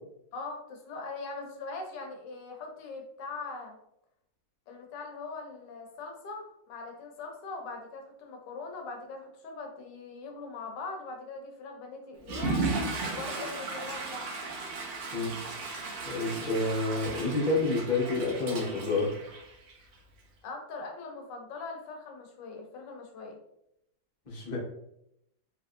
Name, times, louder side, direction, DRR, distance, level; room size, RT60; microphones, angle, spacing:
voice 1, 0.3-3.8 4.7-12.7 13.0-14.3 20.4-23.4, left 3 dB, 75° left, 3 dB, 1.3 m, -41 dB
Water / Toilet flush, 12.2-19.9, right 3 dB, 75° right, 0.6 m, -35 dB
voice 2, 16.0-19.1 24.3-24.6, left 3 dB, 40° left, -4 dB, 0.6 m, -29 dB
3.4 x 2.9 x 2.5 m, 0.78 s
omnidirectional pair, 2.1 m